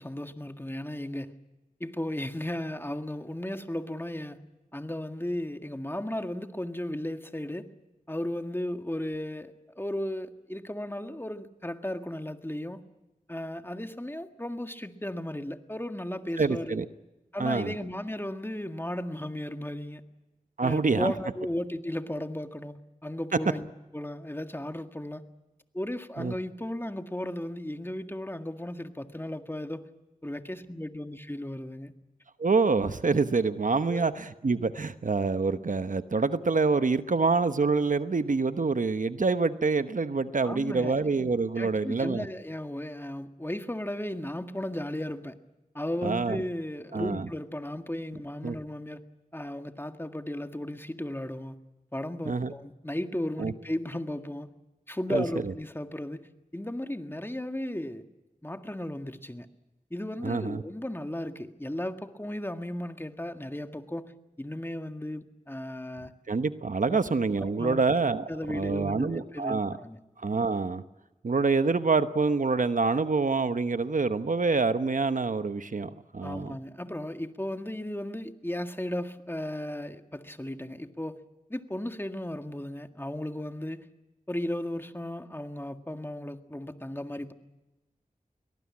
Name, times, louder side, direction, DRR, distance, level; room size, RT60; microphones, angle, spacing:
voice 1, 0.0-1.3 1.8-4.4 4.7-7.7 8.1-12.8 13.3-16.8 17.3-20.0 20.6-22.8 23.0-25.2 25.7-29.9 30.2-31.9 33.9-34.0 40.4-40.9 41.6-45.4 45.7-49.0 49.3-51.6 51.9-54.5 54.9-56.3 56.5-58.0 58.4-59.5 59.9-64.1 64.4-66.1 66.9-67.0 67.4-67.8 68.3-70.0 76.2-81.2 81.5-83.9 84.3-87.3, left 1 dB, 15° left, 7 dB, 1.8 m, -35 dB
voice 2, 16.4-16.9 17.4-17.7 20.6-21.1 26.2-26.3 32.4-34.1 34.4-42.3 46.0-46.4 46.9-47.3 48.4-48.6 52.3-52.5 53.4-53.5 55.1-55.5 60.2-60.6 66.3-69.8 70.2-70.8 71.2-76.6, right 4 dB, 70° right, 11 dB, 1.0 m, -26 dB
23.0 x 19.0 x 8.6 m, 1.1 s
cardioid pair, 40°, 14 cm